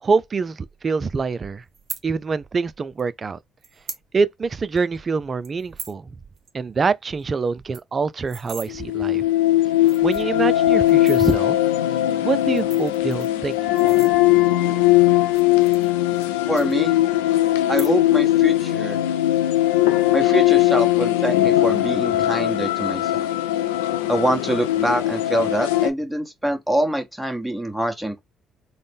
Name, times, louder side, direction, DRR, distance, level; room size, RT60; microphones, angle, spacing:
voice 1, 0.0-1.6 2.0-3.4 4.1-6.1 6.5-9.3 10.0-11.6 12.2-13.6 13.8-14.1, right 4 dB, 40° right, 0.3 m, -25 dB
sound 1, 1.7-2.0 3.0-3.1 3.6-4.0 4.4-4.5 4.8-5.0 5.4-6.0 6.4-6.5 6.8-6.9 7.2-7.3 7.5-8.7 9.4-9.5 9.8-10.4 10.9-11.4 12.4-14.5 15.2-16.3 16.6-17.2 17.6-18.2 18.5-18.9, right 6 dB, 55° right, 0.7 m, -39 dB
sound 2, 8.7-25.9, left 15 dB, 85° left, 0.3 m, -19 dB
voice 2, 16.5-16.9 17.7-19.0 20.1-23.3 24.1-28.2, right 1 dB, 5° right, 1.2 m, -24 dB
3.9 x 2.1 x 3.4 m
hypercardioid pair, 50°, 0 cm